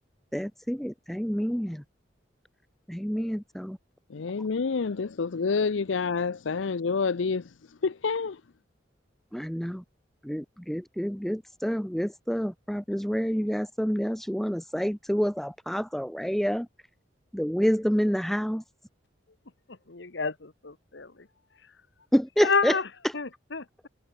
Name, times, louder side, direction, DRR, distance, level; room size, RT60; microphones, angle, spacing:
voice 1, 0.3-1.8 2.9-3.8 9.3-9.8 10.2-16.7 17.3-18.6 22.1-22.8 23.0-23.1, equal, ahead, 0.7 m, -28 dB
voice 2, 4.1-7.4 7.8-8.4, left 5 dB, 85° left, 0.6 m, -28 dB
voice 3, 19.9-21.1 22.4-22.8 23.1-23.9, left 4 dB, 65° left, 1.3 m, -29 dB
head